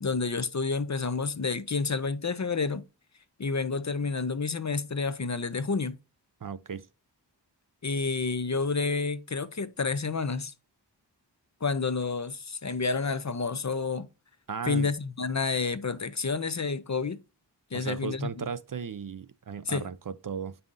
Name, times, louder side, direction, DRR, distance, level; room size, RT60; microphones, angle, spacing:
voice 1, 0.0-2.8 3.4-6.0 7.8-10.5 11.6-14.1 14.7-17.2 17.7-18.5 19.7-19.9, left 4 dB, 40° left, 0.6 m, -29 dB
voice 2, 6.4-6.9 14.5-14.9 17.7-20.6, right 6 dB, 50° right, 0.5 m, -36 dB
8.4 x 5.5 x 2.5 m
wide cardioid pair, 55°, 43 cm